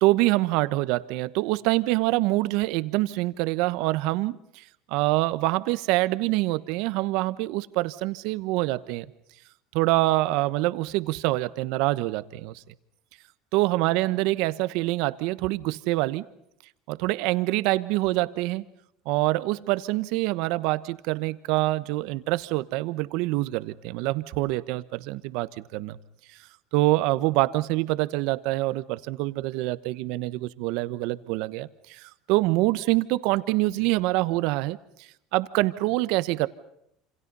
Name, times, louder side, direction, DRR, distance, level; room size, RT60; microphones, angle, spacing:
voice 1, 0.0-9.1 9.7-12.6 13.5-16.3 16.9-18.6 19.0-26.0 26.7-36.5, right 19 dB, 70° right, 15 dB, 1.1 m, -25 dB
27.5 x 27.0 x 5.5 m, 0.75 s
supercardioid pair, 110°, 0 cm